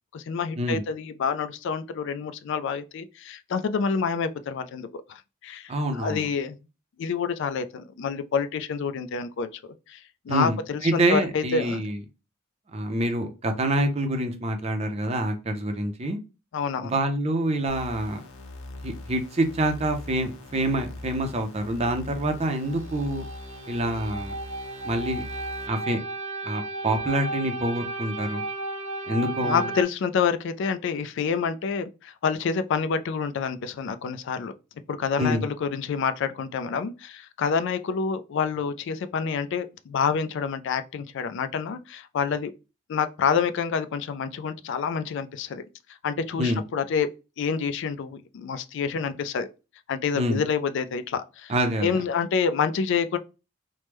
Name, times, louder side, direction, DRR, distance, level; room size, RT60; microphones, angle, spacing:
voice 1, 0.1-6.6 7.0-9.5 9.9-10.0 10.3-11.8 16.5-17.0 29.4-34.5 34.9-42.5 42.9-45.6 46.0-47.1 47.4-49.5 49.9-51.5 51.8-53.2, left 6 dB, 60° left, 0.3 m, -28 dB
voice 2, 5.7-6.3 10.3-12.0 12.7-16.2 16.8-18.2 18.8-23.2 23.7-24.3 24.8-25.2 25.7-26.0 26.4-28.4 29.1-29.7 35.2-35.5 46.4-46.6 50.2-50.4 51.5-52.0, right 1 dB, 30° right, 0.5 m, -26 dB
sound 1, 17.7-25.7, left 2 dB, 80° left, 0.7 m, -41 dB
sound 2, 22.4-29.8, right 2 dB, 75° right, 0.7 m, -34 dB
3.0 x 2.1 x 3.3 m
head